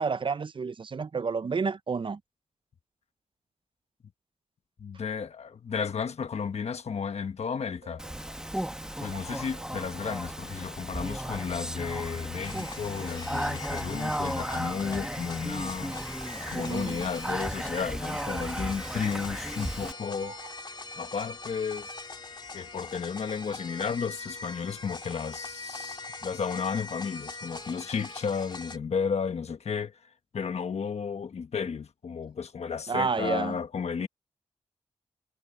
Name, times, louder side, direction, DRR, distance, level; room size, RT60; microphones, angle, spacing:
voice 1, 0.0-2.2 16.5-17.1 32.9-33.6, right 5 dB, 45° right, 0.6 m, -30 dB
voice 2, 4.8-8.0 9.0-16.0 16.5-20.3 21.0-22.0 22.5-34.1, left 6 dB, 70° left, 1.2 m, -33 dB
sound 1, 7.4-12.4 12.9-17.2 17.8-19.2 20.2-20.7, right 5 dB, 65° right, 5.8 m, -54 dB
Speech, 8.0-19.9, equal, 5° right, 1.2 m, -35 dB
sound 2, 12.4-28.8, left 3 dB, 40° left, 2.3 m, -42 dB
cardioid pair, 65°, 11 cm